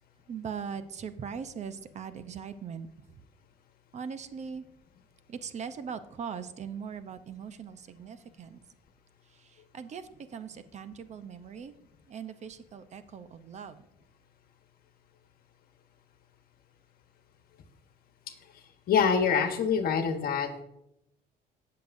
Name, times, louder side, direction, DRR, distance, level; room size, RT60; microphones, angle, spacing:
voice 1, 0.3-2.9 3.9-4.6 5.3-8.6 9.3-11.7 12.1-13.8, right 7 dB, 45° right, 11 dB, 0.7 m, -40 dB
voice 2, 18.9-20.5, left 6 dB, 60° left, 7 dB, 1.2 m, -25 dB
18.0 x 6.7 x 2.6 m, 0.87 s
cardioid pair, 110°, 17 cm